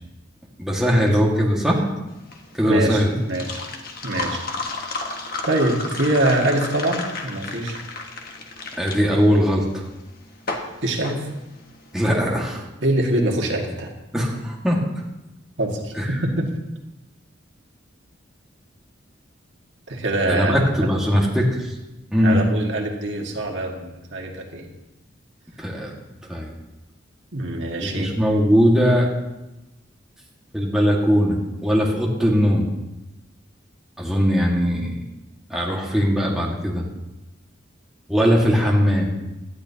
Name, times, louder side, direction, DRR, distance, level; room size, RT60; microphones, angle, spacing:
voice 1, 0.6-1.9 2.5-3.1 8.8-9.8 11.9-12.6 14.1-14.8 15.9-16.2 20.3-21.7 22.1-22.4 25.6-25.9 26.3-26.5 27.8-29.1 30.5-32.6 34.0-35.0 35.5-36.9 38.1-39.1, equal, ahead, -3 dB, 1.8 m, -20 dB
sound 1, 2.1-12.0, left 3 dB, 50° left, 1.4 m, -33 dB
voice 2, 2.6-3.6 4.0-4.4 5.4-7.8 10.8-11.3 12.8-13.9 15.6-16.5 19.9-20.9 22.2-24.7 27.3-28.1 38.6-38.7, right 1 dB, 70° right, 0 dB, 1.9 m, -24 dB
18.0 x 12.0 x 2.9 m, 0.99 s
head